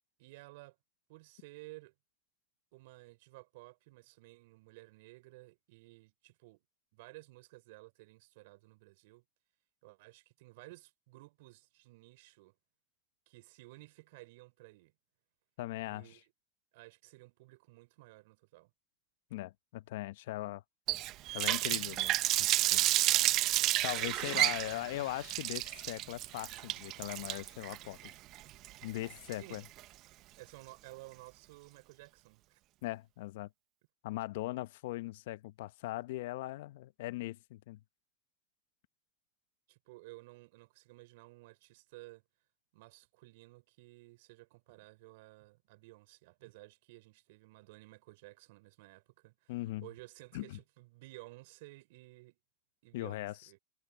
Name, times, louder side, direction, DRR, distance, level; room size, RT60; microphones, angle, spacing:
voice 1, 0.2-0.8 1.1-1.9 2.7-6.6 6.9-9.2 9.8-12.5 13.3-14.9 15.8-16.3 16.7-18.7 29.3-29.6 30.4-32.6 39.7-42.2 42.7-52.4 52.8-53.6, right 22 dB, 65° right, 5.3 m, -55 dB
voice 2, 15.6-16.1 19.3-20.6 21.3-22.8 23.8-28.0 28.8-29.6 32.8-33.5 34.0-37.8 49.5-49.9 50.3-50.6 52.9-53.4, left 17 dB, 70° left, 1.0 m, -40 dB
Water tap faucet, 20.9-29.8, right 16 dB, 45° right, 0.8 m, -31 dB
hypercardioid pair, 105°, 0 cm